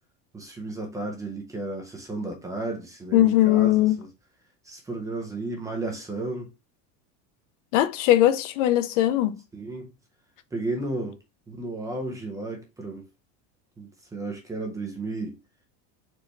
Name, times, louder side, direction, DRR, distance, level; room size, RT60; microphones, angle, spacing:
voice 1, 0.3-4.1 4.6-6.5 9.5-9.9 10.5-11.2 11.5-13.1 13.8-15.4, right 2 dB, 10° right, 0.6 m, -33 dB
voice 2, 3.1-4.0 7.7-9.4, left 14 dB, 65° left, 0.6 m, -20 dB
4.3 x 3.2 x 3.1 m
cardioid pair, 175°, 39 cm